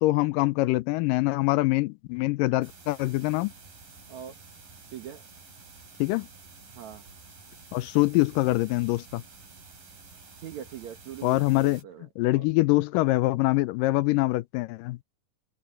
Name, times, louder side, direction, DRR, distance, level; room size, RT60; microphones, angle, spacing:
voice 1, 0.0-3.5 6.0-6.3 7.7-9.2 11.2-11.8 12.2-15.0, left 20 dB, 85° left, 2.2 m, -24 dB
sound 1, 2.6-11.8, right 4 dB, 90° right, 8.4 m, -50 dB
voice 2, 4.1-4.4 4.9-5.2 6.7-7.0 10.4-12.5, right 10 dB, 65° right, 2.4 m, -42 dB
open air
omnidirectional pair, 3.8 m